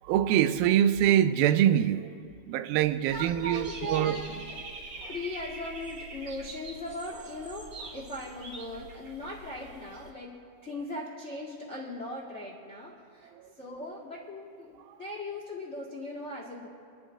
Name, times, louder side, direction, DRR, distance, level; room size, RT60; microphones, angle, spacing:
voice 1, 0.0-4.2 13.4-13.5, right 11 dB, 85° right, 2.4 m, -24 dB
voice 2, 3.1-4.6 5.1-13.3 13.6-16.7, left 1 dB, 25° left, 1.5 m, -39 dB
Dog / Bird, 3.1-10.1, right 2 dB, 35° right, 2.9 m, -44 dB
28.5 x 11.0 x 3.8 m
omnidirectional pair, 4.2 m